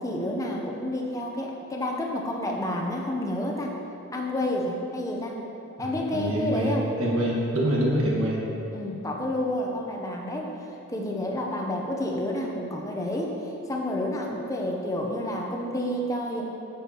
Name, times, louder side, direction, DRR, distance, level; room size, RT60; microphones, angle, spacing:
voice 1, 0.0-3.7 4.1-5.4 5.8-6.9 8.7-10.5 10.9-13.4 13.7-16.4, left 1 dB, 15° left, 0 dB, 0.7 m, -29 dB
voice 2, 5.8-8.4, right 1 dB, 75° right, -4 dB, 1.6 m, -26 dB
9.3 x 7.0 x 2.9 m, 2.9 s
head